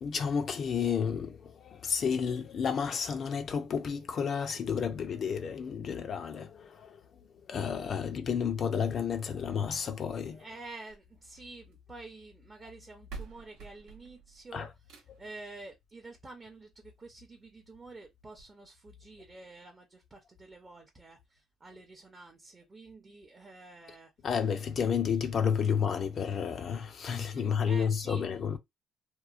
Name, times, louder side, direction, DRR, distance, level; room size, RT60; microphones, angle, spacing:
voice 1, 0.0-7.0 7.5-10.4 14.5-14.7 24.2-28.6, left 7 dB, 45° left, 0.4 m, -31 dB
voice 2, 10.3-24.1 27.1-28.3, right 3 dB, 25° right, 0.6 m, -49 dB
sound 1, 10.7-11.9 12.7-12.8 13.1-15.4 16.7-16.8 17.3-17.4 17.7-17.8 18.3-18.4, right 4 dB, 85° right, 0.7 m, -48 dB
2.8 x 2.0 x 2.3 m
cardioid pair, 120°, 0 cm